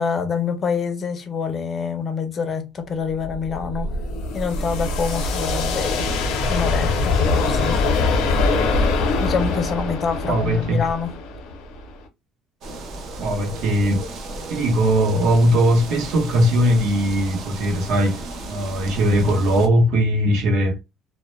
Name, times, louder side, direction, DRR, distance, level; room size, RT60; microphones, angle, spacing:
voice 1, 0.0-4.0 4.3-7.8 9.2-11.1, left 5 dB, 30° left, 0.5 m, -26 dB
sound 1, 3.1-12.0, left 3 dB, 75° left, 0.6 m, -23 dB
voice 2, 10.3-10.8 13.2-14.0 14.5-18.2 18.5-20.8, equal, 70° right, 0.8 m, -19 dB
sound 2, 12.6-19.7, right 2 dB, 45° right, 0.5 m, -34 dB
2.2 x 2.1 x 3.0 m
cardioid pair, 170°, 0 cm